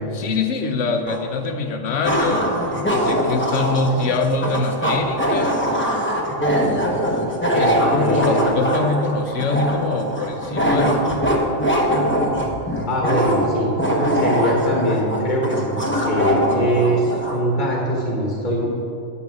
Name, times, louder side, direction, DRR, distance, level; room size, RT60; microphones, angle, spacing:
voice 1, 0.1-5.7 7.6-11.5, left 3 dB, 70° left, 5 dB, 1.1 m, -24 dB
sound 1, 1.1-1.2 2.0-17.4, equal, 10° left, 0.8 m, -22 dB
voice 2, 7.4-8.4 12.9-18.7, equal, 40° left, -2 dB, 1.4 m, -22 dB
9.8 x 6.7 x 4.8 m, 2.8 s
omnidirectional pair, 1.3 m